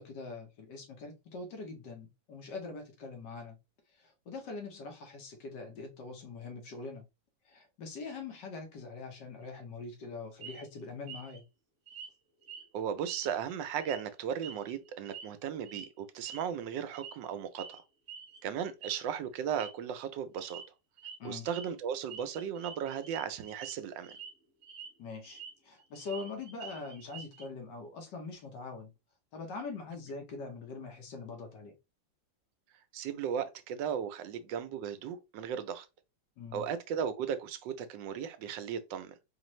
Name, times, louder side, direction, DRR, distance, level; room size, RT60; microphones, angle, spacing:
voice 1, 0.0-3.6 4.0-7.0 7.5-11.4 21.2-21.5 25.0-28.9 29.3-31.7 36.4-36.6, left 4 dB, 70° left, 1.6 m, -43 dB
sound 1, 10.4-10.7 11.1-11.4 11.9-12.1 12.4-12.7 13.1-13.5 13.8-14.0 14.4-15.3 15.7-15.9 16.3-16.5 16.9-17.3 17.6-17.8 18.1-18.4 18.8-19.0 19.4-19.7 20.4-20.6 21.0-21.2 21.5-21.7 22.1-23.7 24.0-24.3 24.6-25.5 25.8-27.5, right 7 dB, 50° right, 1.1 m, -47 dB
voice 2, 12.7-17.8 18.4-20.6 21.2-24.2 32.9-35.9 36.5-39.1, right 8 dB, 80° right, 1.2 m, -36 dB
4.4 x 2.5 x 3.1 m
omnidirectional pair, 2.0 m